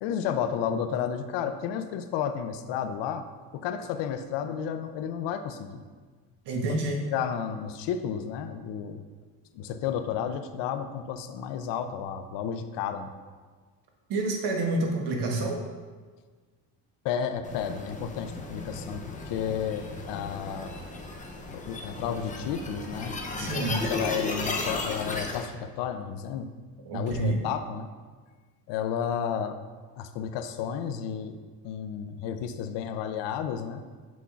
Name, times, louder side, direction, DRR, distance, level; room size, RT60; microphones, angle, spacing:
voice 1, 0.0-3.3 3.5-5.8 7.0-9.0 9.5-13.1 17.0-20.8 21.5-23.1 23.4-26.5 26.9-27.9 28.7-29.6 30.0-33.9, left 8 dB, 80° left, 9 dB, 0.6 m, -32 dB
voice 2, 6.4-7.0 14.1-15.6 23.3-23.8 26.9-27.4, right 2 dB, 70° right, 2 dB, 1.2 m, -28 dB
sound 1, 17.4-25.5, left 2 dB, 20° left, 0.6 m, -35 dB
6.8 x 6.1 x 2.4 m, 1.5 s
cardioid pair, 125°, 42 cm